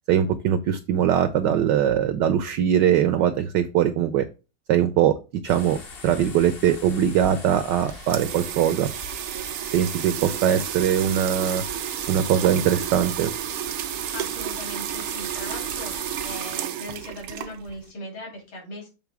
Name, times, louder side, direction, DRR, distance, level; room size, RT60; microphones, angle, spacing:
voice 1, 0.1-4.2 4.7-5.1 5.4-5.8 6.0-8.9 9.7-11.6 12.1-13.3, right 9 dB, 70° right, 10 dB, 1.1 m, -21 dB
sound 1, 5.5-16.4, left 4 dB, 40° left, 0.8 m, -41 dB
sound 2, 7.9-17.9, right 11 dB, 90° right, 1.6 m, -31 dB
voice 2, 14.1-18.9, left 1 dB, 70° left, -1 dB, 3.4 m, -39 dB
7.2 x 3.6 x 4.7 m, 0.30 s
omnidirectional pair, 2.3 m